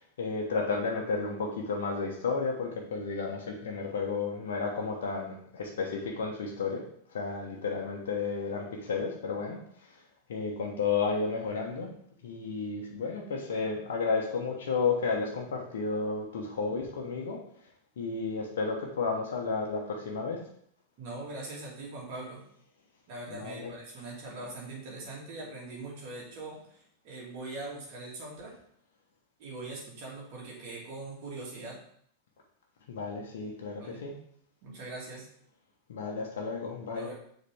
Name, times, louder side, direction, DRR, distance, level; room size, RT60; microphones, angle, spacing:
voice 1, 0.2-6.8 7.1-9.6 10.3-11.9 12.2-17.4 18.0-20.4 23.3-23.7 32.9-34.1 35.9-37.1, left 4 dB, 60° left, 0 dB, 1.1 m, -32 dB
voice 2, 21.0-22.4 23.1-28.5 29.4-31.8 33.7-34.0 34.6-35.2 37.0-37.1, right 2 dB, 45° right, -4 dB, 2.5 m, -42 dB
6.7 x 4.1 x 3.6 m, 0.64 s
figure-of-eight pair, 90°, 0 cm